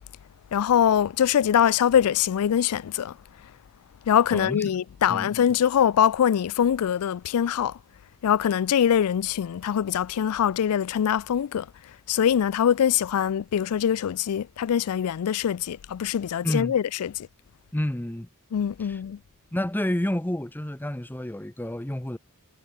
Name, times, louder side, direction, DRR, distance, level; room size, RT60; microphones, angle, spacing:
voice 1, 0.5-3.2 4.1-7.8 8.2-11.7 12.1-17.3 18.5-19.2, left 9 dB, 90° left, 0.4 m, -23 dB
voice 2, 4.3-4.7 5.1-5.3 16.4-16.7 17.7-18.3 18.9-19.0 19.5-22.2, left 1 dB, 10° left, 0.8 m, -29 dB
head